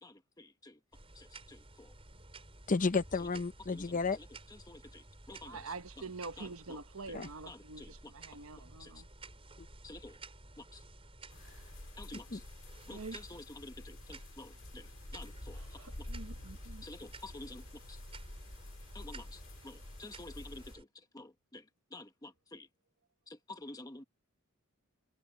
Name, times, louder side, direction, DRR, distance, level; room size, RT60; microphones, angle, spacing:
voice 1, 0.0-0.8 1.1-1.9 3.7-4.3 4.7-5.7 6.4-6.8 7.5-8.1 8.8-8.9 9.8-10.2 10.6-10.8 12.0-12.4 12.9-15.8 16.8-18.0 18.9-20.9 21.1-21.6 21.9-22.7 23.3-24.0, left 2 dB, 15° left, 1.1 m, -50 dB
sound 1, 0.9-20.8, right 2 dB, 25° right, 5.7 m, -54 dB
voice 2, 2.7-4.2 7.1-7.3 12.1-12.4, left 4 dB, 40° left, 0.7 m, -32 dB
voice 3, 5.4-9.1 11.4-11.7 12.8-13.2 15.5-16.9, right 3 dB, 75° right, 1.2 m, -46 dB
sound 2, 11.3-20.8, left 1 dB, 65° left, 2.0 m, -49 dB
head